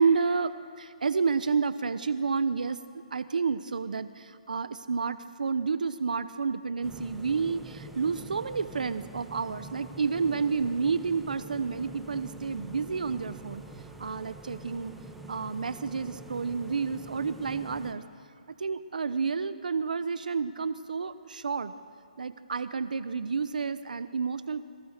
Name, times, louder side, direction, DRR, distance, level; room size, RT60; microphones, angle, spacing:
voice 1, 0.0-2.8 3.1-13.6 14.0-14.9 15.3-18.0 18.6-21.7 22.2-24.6, right 5 dB, 75° right, 13 dB, 1.0 m, -30 dB
sound 1, 6.8-17.9, right 2 dB, 5° right, 1.4 m, -45 dB
27.0 x 24.5 x 6.7 m, 2.3 s
hypercardioid pair, 150°, 4 cm